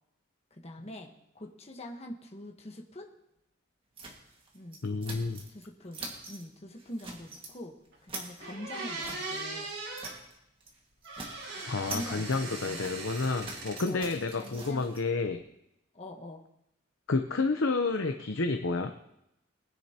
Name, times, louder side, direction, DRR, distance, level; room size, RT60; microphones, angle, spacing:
voice 1, 0.5-3.1 4.5-4.8 5.5-7.7 8.0-9.7 11.9-12.9 13.9-14.8 15.9-16.4, left 1 dB, 30° left, 2 dB, 1.2 m, -44 dB
sound 1, 4.0-5.7 5.9-6.4 6.8-7.5 7.9-10.4 10.6-10.8 11.0-15.0, right 3 dB, 25° right, 1.8 m, -45 dB
voice 2, 4.8-5.4 11.7-15.4 17.1-18.9, left 3 dB, 70° left, 5 dB, 0.7 m, -30 dB
sound 2, 7.9-8.0 8.4-10.1 11.0-13.8 14.1-14.8, right 3 dB, 70° right, 4.0 m, -39 dB
20.0 x 10.0 x 2.9 m, 0.83 s
head